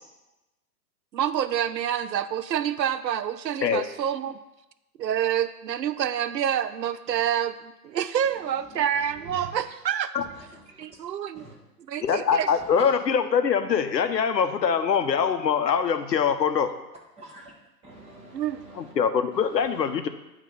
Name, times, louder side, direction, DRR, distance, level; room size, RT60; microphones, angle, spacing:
voice 1, 1.1-4.4 5.0-10.1 10.8-11.5 11.8-12.5 18.3-18.6, right 9 dB, 85° right, 13 dB, 0.6 m, -27 dB
voice 2, 10.2-10.9 11.3-11.5 17.2-17.5 17.8-18.9 19.3-19.8, right 2 dB, 10° right, -2 dB, 1.4 m, -47 dB
voice 3, 12.0-16.7 18.8-20.1, left 7 dB, 85° left, 9 dB, 0.8 m, -23 dB
9.2 x 3.1 x 5.3 m, 0.98 s
figure-of-eight pair, 115°, 49 cm